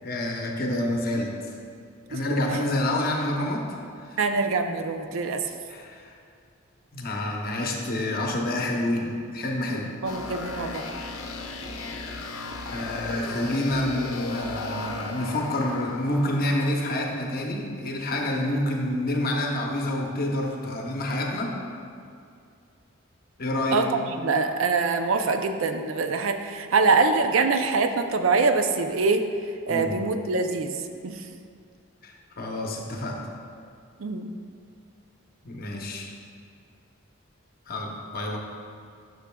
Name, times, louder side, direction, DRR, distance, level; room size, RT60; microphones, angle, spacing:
voice 1, 0.0-1.3 2.1-3.7 4.1-4.2 5.7-6.1 6.9-9.9 12.7-21.6 23.4-23.9 29.7-30.0 32.0-33.3 35.4-36.1 37.7-38.4, left 1 dB, 45° left, 0 dB, 0.8 m, -28 dB
voice 2, 4.2-5.4 10.0-10.9 23.7-29.2 29.7-30.7 31.0-31.2 34.0-34.3, right 4 dB, 70° right, 7 dB, 0.4 m, -24 dB
sound 1, 10.0-16.7, left 2 dB, 85° left, 0.6 m, -35 dB
10.0 x 6.2 x 2.2 m, 2.4 s
head